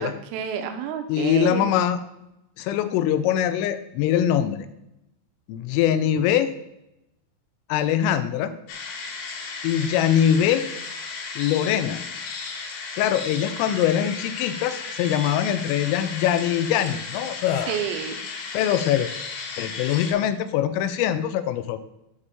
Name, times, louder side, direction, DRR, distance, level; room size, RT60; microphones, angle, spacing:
voice 1, 0.0-1.7 13.6-13.8 17.7-18.2, right 8 dB, 85° right, 7 dB, 3.4 m, -30 dB
voice 2, 1.1-2.0 2.6-4.7 5.5-6.5 7.7-8.5 9.6-10.6 11.4-12.0 13.0-17.8 18.5-19.1 19.6-21.8, left 10 dB, 85° left, 11 dB, 3.1 m, -23 dB
sound 1, 8.7-20.1, left 4 dB, 70° left, 3.5 m, -35 dB
9.9 x 4.2 x 6.9 m, 0.86 s
omnidirectional pair, 6.0 m